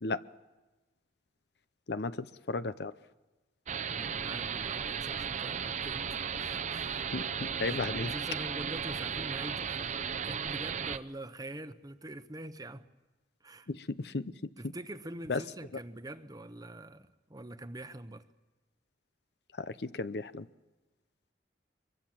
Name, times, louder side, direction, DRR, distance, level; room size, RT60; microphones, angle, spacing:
voice 1, 1.9-2.9 7.1-8.1 13.7-14.3 15.3-15.4 19.6-20.5, left 3 dB, 65° left, 0.7 m, -34 dB
sound 1, 3.7-11.0, right 7 dB, 45° right, 0.7 m, -35 dB
voice 2, 3.8-7.1 7.6-10.0 10.2-12.9 13.4-13.7 14.6-18.2, right 1 dB, 20° right, 1.0 m, -45 dB
24.0 x 23.0 x 7.6 m
head